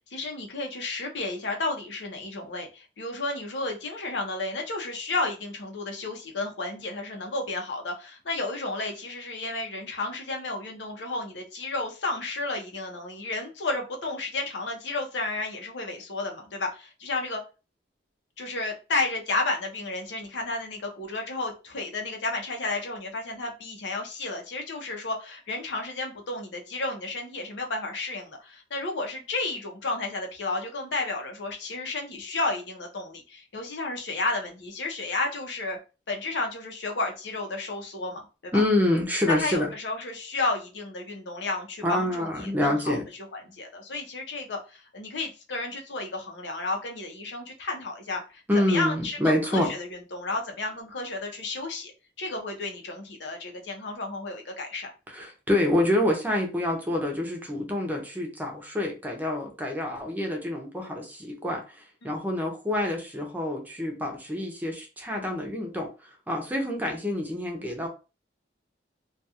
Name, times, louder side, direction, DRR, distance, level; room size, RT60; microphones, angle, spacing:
voice 1, 0.0-17.4 18.4-35.8 36.1-38.6 39.3-43.0 43.3-51.9 52.2-54.9 62.0-62.1, left 2 dB, 85° left, 2 dB, 0.7 m, -32 dB
voice 2, 38.5-39.7 41.8-43.0 48.5-49.7 55.1-67.9, left 1 dB, 10° right, 1 dB, 0.6 m, -27 dB
2.4 x 2.3 x 2.7 m, 0.31 s
head